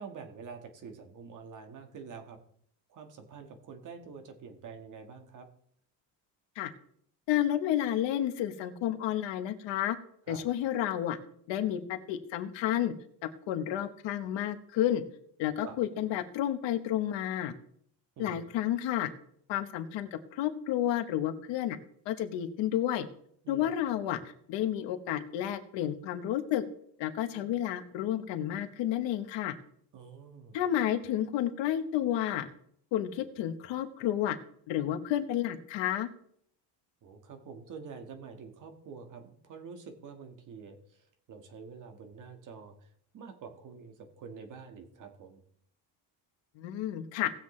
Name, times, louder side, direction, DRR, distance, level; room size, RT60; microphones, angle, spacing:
voice 1, 0.0-2.4 2.9-5.5 10.3-10.4 15.6-15.8 18.2-18.5 23.4-23.7 27.3-27.5 29.9-30.6 37.0-42.9 43.1-45.4, right 5 dB, 40° right, 5 dB, 1.6 m, -47 dB
voice 2, 7.3-10.0 10.3-11.2 11.5-12.9 13.2-15.0 15.4-17.5 18.2-19.1 19.5-21.8 22.1-23.1 23.5-24.2 24.5-26.6 27.0-29.5 30.5-32.5 32.9-34.4 34.7-36.1 46.6-47.3, left 11 dB, 70° left, 10 dB, 1.2 m, -31 dB
18.5 x 7.4 x 3.2 m, 0.65 s
cardioid pair, 170°, 46 cm